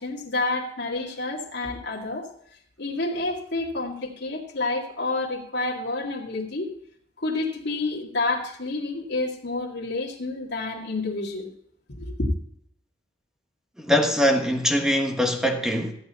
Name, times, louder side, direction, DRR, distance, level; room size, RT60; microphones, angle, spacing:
voice 1, 0.0-2.3 2.8-6.7 7.2-11.5 11.9-12.3, left 2 dB, 65° left, 2.2 m, -29 dB
voice 2, 13.8-15.9, equal, 5° right, 1.4 m, -22 dB
14.0 x 8.7 x 4.2 m
head